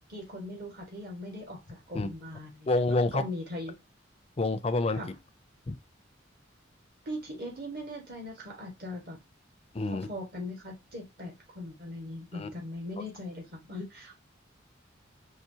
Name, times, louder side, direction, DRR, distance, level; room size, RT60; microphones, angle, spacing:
voice 1, 0.1-2.7 3.1-3.7 4.9-5.1 7.0-9.2 9.9-14.2, left 1 dB, 50° right, 1.6 m, -40 dB
voice 2, 2.7-3.3 4.4-5.0 5.7-5.8 9.7-10.1 12.3-12.5 13.0-13.1, left 2 dB, 30° left, 0.4 m, -28 dB
4.7 x 3.2 x 2.7 m
head